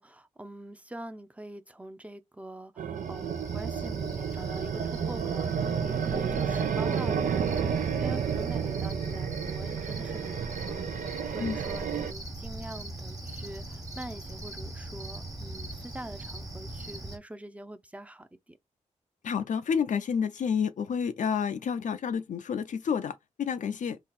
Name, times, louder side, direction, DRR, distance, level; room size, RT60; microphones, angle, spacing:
voice 1, 0.0-18.6, right 1 dB, 10° right, 0.6 m, -44 dB
sound 1, 2.8-12.1, right 7 dB, 80° right, 0.5 m, -31 dB
Cricket, 2.9-17.2, right 2 dB, 25° right, 1.4 m, -40 dB
voice 2, 19.2-24.0, left 7 dB, 70° left, 0.5 m, -29 dB
3.8 x 2.4 x 4.1 m
cardioid pair, 60°, 13 cm